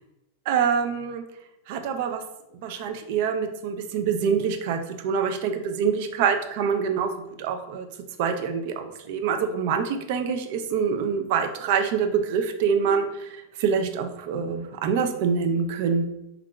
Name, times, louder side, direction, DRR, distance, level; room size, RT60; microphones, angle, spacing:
voice 1, 0.5-1.2 1.7-2.2 2.6-7.9 8.2-16.0, right 6 dB, 55° right, 7 dB, 0.3 m, -25 dB
2.9 x 2.3 x 2.2 m, 0.86 s
supercardioid pair, 150°, 0 cm